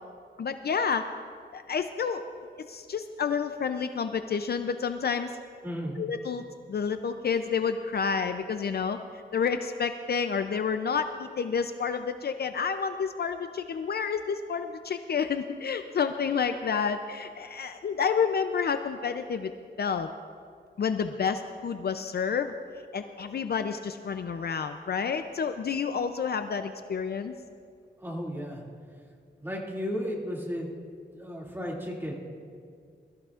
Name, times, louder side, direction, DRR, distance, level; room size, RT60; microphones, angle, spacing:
voice 1, 0.4-1.1 1.5-2.2 2.7-5.4 6.0-6.4 6.7-9.0 9.3-19.5 19.8-20.1 20.8-22.6 22.9-27.3, left 6 dB, 60° left, 8 dB, 0.5 m, -29 dB
voice 2, 5.6-6.0 28.0-28.6 29.4-30.7 31.1-32.1, equal, 10° right, -3 dB, 2.4 m, -34 dB
21.5 x 14.0 x 2.5 m, 2.2 s
wide cardioid pair, 105°, 18 cm